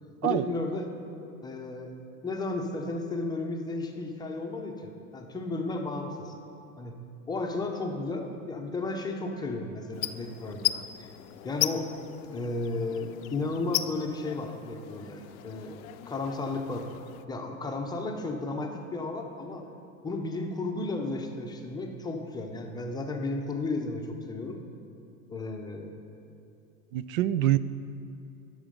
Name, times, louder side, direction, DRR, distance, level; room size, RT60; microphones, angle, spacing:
voice 1, 0.2-0.9 1.4-2.0 2.2-6.3 6.8-7.0 7.3-10.7 11.0-11.1 11.4-11.9 12.3-15.8 16.1-16.9 17.3-19.7 20.0-24.6 25.3-25.9, left 2 dB, 10° left, 2 dB, 0.6 m, -33 dB
sound 1, 9.9-17.3, left 14 dB, 85° left, 0.5 m, -36 dB
voice 2, 26.9-27.6, right 13 dB, 80° right, 16 dB, 0.5 m, -25 dB
11.5 x 6.3 x 5.1 m, 2.6 s
supercardioid pair, 130°, 41 cm